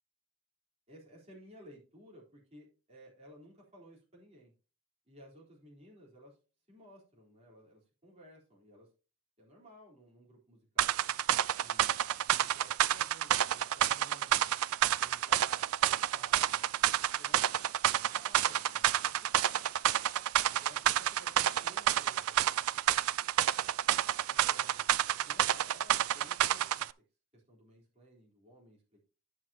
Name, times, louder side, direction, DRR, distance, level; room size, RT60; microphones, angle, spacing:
voice 1, 0.9-4.5 5.1-6.4 6.7-8.9 9.4-11.0 11.6-12.0 12.2-14.5 15.0-19.7 20.5-22.6 24.2-24.9 25.2-26.9 27.3-29.0, equal, 30° right, -3 dB, 3.8 m, -57 dB
sound 1, 10.8-26.9, right 11 dB, 85° right, 0.4 m, -29 dB
11.0 x 8.1 x 2.9 m, 0.34 s
head